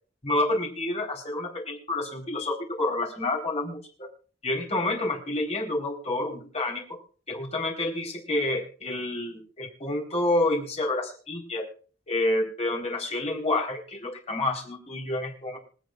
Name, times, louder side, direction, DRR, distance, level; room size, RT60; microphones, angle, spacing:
voice 1, 0.2-4.1 4.4-7.0 7.3-11.6 12.1-15.6, left 2 dB, 40° left, 0 dB, 4.2 m, -29 dB
26.5 x 8.9 x 2.5 m, 0.40 s
head